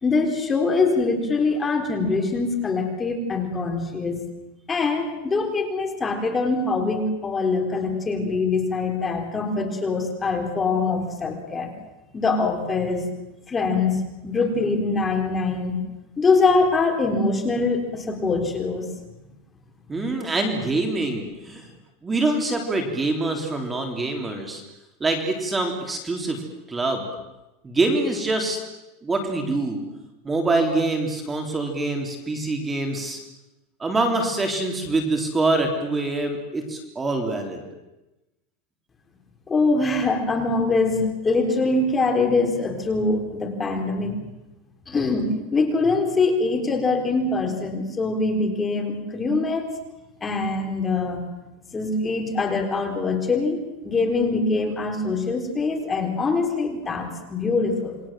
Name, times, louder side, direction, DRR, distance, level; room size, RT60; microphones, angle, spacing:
voice 1, 0.0-4.3 4.7-11.7 12.1-13.1 13.5-15.8 16.2-18.9 39.5-44.2 44.9-49.7 50.2-51.3 51.7-58.0, left 3 dB, 15° left, 3 dB, 3.9 m, -23 dB
voice 2, 19.9-21.7 22.0-24.6 25.0-26.4 26.7-27.0 27.6-28.6 29.0-29.8 30.2-33.2 33.8-37.6, right 2 dB, 15° right, 3 dB, 3.5 m, -25 dB
28.0 x 23.5 x 7.6 m, 0.98 s
supercardioid pair, 155°, 0 cm